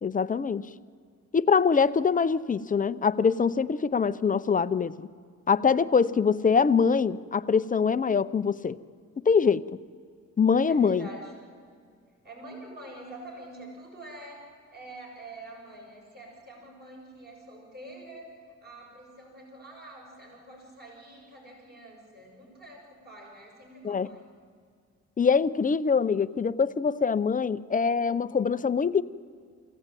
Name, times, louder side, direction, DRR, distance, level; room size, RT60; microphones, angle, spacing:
voice 1, 0.0-0.7 1.3-5.1 5.5-8.8 9.2-9.6 10.4-11.1 23.8-24.1 25.2-29.0, left 5 dB, 25° left, 13 dB, 0.6 m, -24 dB
voice 2, 10.7-11.3 12.2-18.3 18.6-24.3, right 1 dB, 35° right, -1 dB, 7.1 m, -46 dB
24.0 x 16.0 x 9.1 m, 2.1 s
cardioid pair, 90°, 30 cm